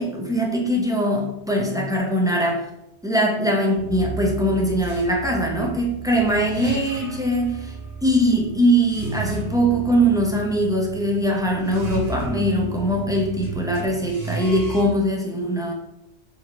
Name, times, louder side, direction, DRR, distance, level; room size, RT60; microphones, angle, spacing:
voice 1, 0.0-2.6 3.0-7.8 8.0-15.7, equal, 5° right, -1 dB, 0.3 m, -21 dB
sound 1, 3.8-14.8, right 4 dB, 40° right, 0.9 m, -33 dB
4.4 x 2.7 x 2.9 m, 0.85 s
omnidirectional pair, 1.1 m